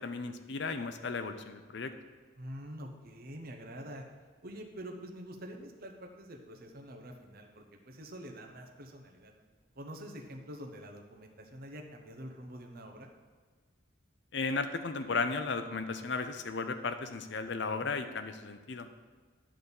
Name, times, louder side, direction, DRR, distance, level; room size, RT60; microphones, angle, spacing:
voice 1, 0.0-1.9 14.3-18.9, left 4 dB, 60° left, 9 dB, 0.7 m, -35 dB
voice 2, 2.4-4.0 4.4-9.3 9.8-13.1, equal, 50° right, 3 dB, 1.0 m, -46 dB
10.5 x 4.1 x 7.0 m, 1.5 s
head